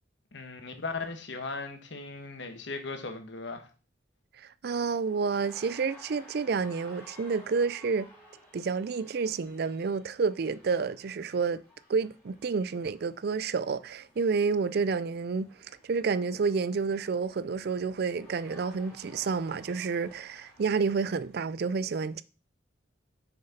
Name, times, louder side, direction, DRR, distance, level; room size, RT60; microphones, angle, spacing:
voice 1, 0.3-3.7, left 3 dB, 60° left, 1.2 m, -37 dB
voice 2, 4.4-8.1 8.5-11.6 11.9-15.5 15.8-22.2, right 5 dB, 50° right, 0.4 m, -29 dB
sound 1, 4.8-21.4, equal, 10° left, 2.5 m, -56 dB
6.4 x 5.8 x 4.2 m
head